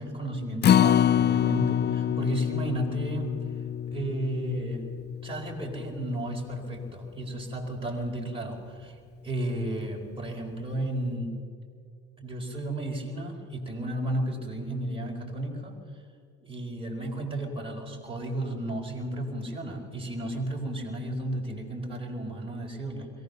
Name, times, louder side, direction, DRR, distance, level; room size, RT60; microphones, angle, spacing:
voice 1, 0.0-3.3 3.9-4.8 5.2-9.0 9.2-11.3 12.2-15.8 16.4-23.1, right 1 dB, 15° right, -1 dB, 4.4 m, -33 dB
Acoustic guitar, 0.6-6.9 7.3-7.4 7.8-7.9, left 9 dB, 30° left, 0.4 m, -26 dB
22.5 x 17.0 x 6.9 m, 2.2 s
supercardioid pair, 75°, 35 cm